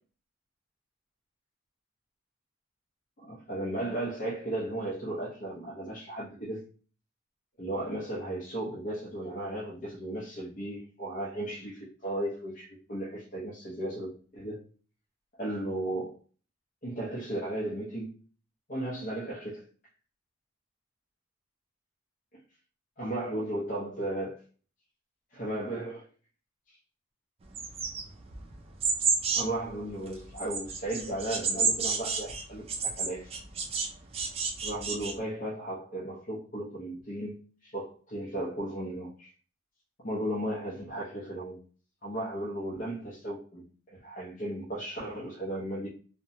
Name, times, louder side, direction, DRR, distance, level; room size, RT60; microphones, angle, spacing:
voice 1, 3.2-6.6 7.6-14.7 15.4-16.2 16.8-18.2 18.7-19.6 23.0-24.4 25.3-26.1 26.7-26.8 29.3-33.3 34.6-39.3 40.0-41.6 42.0-45.9, right 1 dB, 40° left, 0.6 m, -35 dB
sound 1, 27.5-29.6 30.1-33.9 34.1-35.1, right 5 dB, 30° right, 0.4 m, -30 dB
2.8 x 2.1 x 2.6 m
head